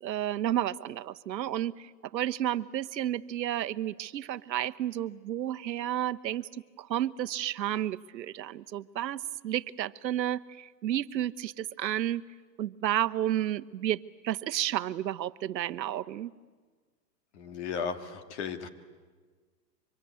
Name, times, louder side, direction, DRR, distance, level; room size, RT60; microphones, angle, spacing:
voice 1, 0.0-6.5 6.8-12.2 12.6-16.3, right 12 dB, 85° right, 13 dB, 1.0 m, -31 dB
voice 2, 17.3-18.7, left 6 dB, 40° left, 9 dB, 2.0 m, -35 dB
25.0 x 24.5 x 9.5 m, 1.4 s
hypercardioid pair, 165°, 50 cm